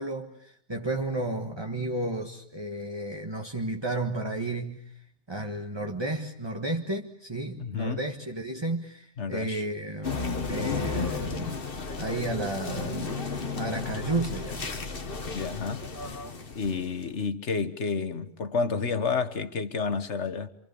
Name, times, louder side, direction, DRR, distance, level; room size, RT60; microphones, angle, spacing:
voice 1, 0.0-5.0 5.3-11.6 12.0-13.2 13.5-14.8, right 2 dB, 25° right, 1.5 m, -32 dB
voice 2, 7.6-8.0 9.2-9.6 15.3-16.2 16.5-20.5, left 5 dB, 85° left, 1.8 m, -30 dB
sound 1, 10.0-17.0, left 4 dB, 55° left, 1.8 m, -33 dB
28.0 x 27.0 x 7.0 m
omnidirectional pair, 1.1 m